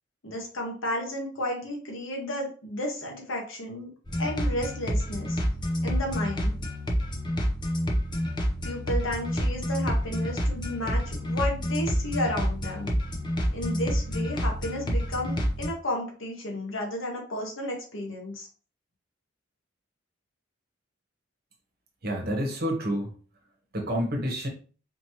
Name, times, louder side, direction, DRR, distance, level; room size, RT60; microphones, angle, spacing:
voice 1, 0.2-3.9 4.2-5.4 5.8-6.6 8.6-12.9 13.5-18.5, left 1 dB, 90° left, 1.3 m, -32 dB
sound 1, 4.1-15.7, equal, 25° left, 0.7 m, -28 dB
voice 2, 22.0-23.1 23.7-24.5, equal, 50° right, 1.1 m, -28 dB
4.3 x 2.9 x 2.9 m
head